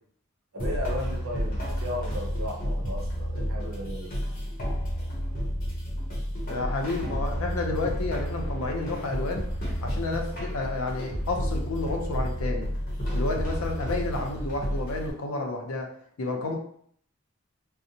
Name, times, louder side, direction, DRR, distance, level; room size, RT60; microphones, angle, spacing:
voice 1, 0.5-4.4, left 1 dB, 75° right, 0 dB, 0.7 m, -36 dB
sound 1, 0.6-15.1, equal, 45° left, 0.7 m, -31 dB
voice 2, 6.5-9.5 9.8-12.7 13.1-15.9 16.2-16.6, left 2 dB, 80° left, 2 dB, 0.5 m, -31 dB
2.6 x 2.0 x 2.7 m, 0.63 s
head